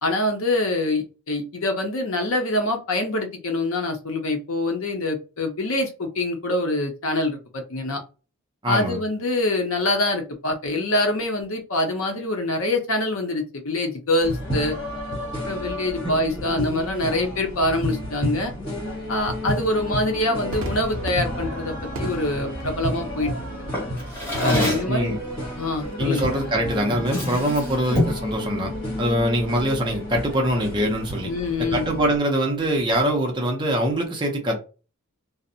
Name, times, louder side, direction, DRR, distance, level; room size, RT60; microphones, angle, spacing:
voice 1, 0.0-8.0 8.7-14.7 15.4-18.5 19.1-23.3 24.4-25.1 25.6-26.3 31.2-31.8, left 1 dB, 70° left, 4 dB, 0.7 m, -25 dB
voice 2, 8.6-9.0 16.0-16.1 24.4-25.2 26.0-31.3 31.7-34.6, equal, 20° right, 1 dB, 0.5 m, -23 dB
sound 1, 14.2-32.2, equal, 55° left, 1.4 m, -31 dB
Crowd / Fireworks, 20.5-27.1, right 1 dB, 70° right, 0.5 m, -37 dB
Drawer open or close, 23.7-25.0 26.2-26.4 26.8-28.3, left 1 dB, 10° left, 0.8 m, -28 dB
2.5 x 2.0 x 2.6 m, 0.33 s
head